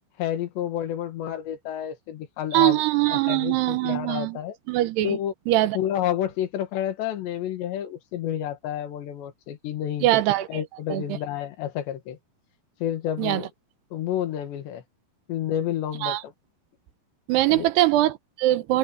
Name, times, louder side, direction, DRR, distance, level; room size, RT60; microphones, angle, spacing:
voice 1, 0.2-2.8 3.1-4.6 5.0-5.3 5.7-10.1 10.5-12.2 12.8-13.5 13.9-14.8 15.3-16.3 17.5-17.7, left 11 dB, 80° left, 4.0 m, -30 dB
voice 2, 2.5-4.4 4.7-5.2 5.5-5.8 10.0-10.6 10.9-11.2 13.2-13.4 16.0-16.2 17.3-18.8, right 16 dB, 80° right, 2.9 m, -22 dB
open air
omnidirectional pair, 5.0 m